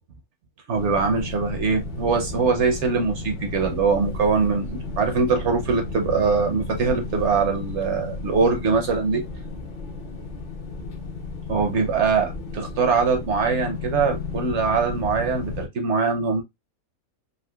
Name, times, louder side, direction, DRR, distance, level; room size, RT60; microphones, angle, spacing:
sound 1, 0.7-15.7, left 3 dB, 50° left, 0.6 m, -33 dB
voice 1, 0.7-9.2 11.5-16.4, right 5 dB, 65° right, 0.8 m, -22 dB
3.7 x 2.5 x 2.2 m
omnidirectional pair, 1.5 m